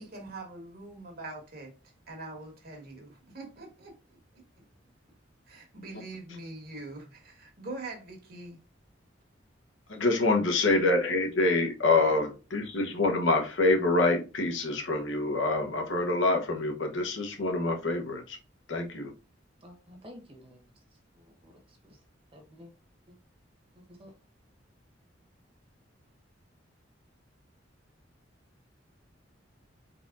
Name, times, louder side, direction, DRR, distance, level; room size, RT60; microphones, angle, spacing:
voice 1, 0.0-1.7 2.1-4.4 5.5-8.6, right 2 dB, 50° right, 1.4 m, -43 dB
voice 2, 10.0-18.4 18.7-19.1, left 2 dB, 75° left, 1.0 m, -26 dB
voice 3, 19.6-20.6 21.1-22.0 22.3-22.7 23.1-23.2 23.9-24.1, left 1 dB, 30° right, 1.2 m, -51 dB
4.1 x 4.1 x 2.5 m
head